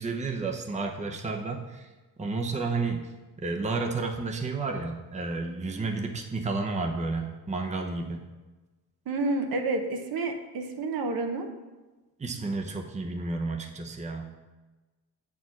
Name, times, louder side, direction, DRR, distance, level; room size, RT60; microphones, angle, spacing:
voice 1, 0.0-1.9 2.2-3.1 3.4-8.2 12.2-14.4, right 3 dB, 20° right, 3 dB, 0.8 m, -31 dB
voice 2, 9.1-11.5, right 2 dB, 70° right, 4 dB, 1.1 m, -29 dB
8.1 x 4.7 x 5.9 m, 1.2 s
cardioid pair, 120°, 38 cm